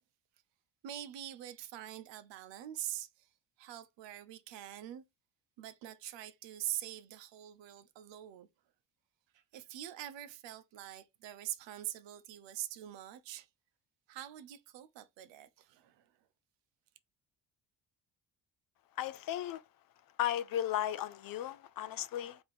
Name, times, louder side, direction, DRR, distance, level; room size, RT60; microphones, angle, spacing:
voice 1, 0.8-3.3 3.6-5.0 5.6-8.5 9.3-13.5 14.1-16.1, right 12 dB, 70° right, 0.8 m, -44 dB
voice 2, 19.0-19.6 20.2-22.4, left 12 dB, 50° left, 0.5 m, -35 dB
3.6 x 2.9 x 4.1 m
supercardioid pair, 60°, 46 cm